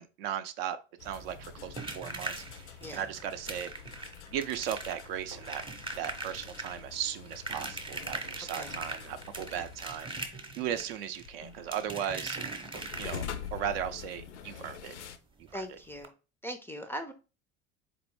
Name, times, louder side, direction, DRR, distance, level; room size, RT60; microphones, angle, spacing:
voice 1, 0.0-3.7 4.3-5.6 6.0-10.1 10.6-12.4 13.0-13.2 13.5-14.9 15.5-15.8, right 9 dB, 60° right, 0.5 m, -37 dB
sound 1, 1.0-15.2, left 8 dB, 80° left, 0.5 m, -46 dB
sound 2, 1.0-13.6 15.0-15.1 15.4-15.5 16.0-16.1, right 2 dB, 15° right, 0.8 m, -41 dB
voice 2, 15.5-16.1 16.4-17.1, equal, 5° left, 0.4 m, -40 dB
4.2 x 2.6 x 3.0 m
figure-of-eight pair, 70°, 34 cm